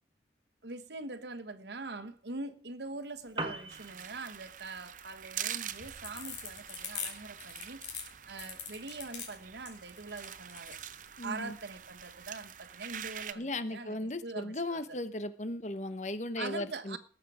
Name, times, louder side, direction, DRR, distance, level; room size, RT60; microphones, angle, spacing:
voice 1, 0.6-7.8 8.3-10.8 11.2-15.0 16.4-17.0, right 3 dB, 75° right, 1.2 m, -43 dB
Piano, 3.1-12.1, right 3 dB, 25° right, 1.3 m, -48 dB
sound 1, 3.7-13.3, right 10 dB, 45° right, 0.7 m, -45 dB
sound 2, 5.7-10.8, left 7 dB, 85° left, 3.8 m, -42 dB
voice 2, 11.2-11.5 13.3-17.0, left 1 dB, 40° left, 0.9 m, -36 dB
19.0 x 7.6 x 4.9 m
head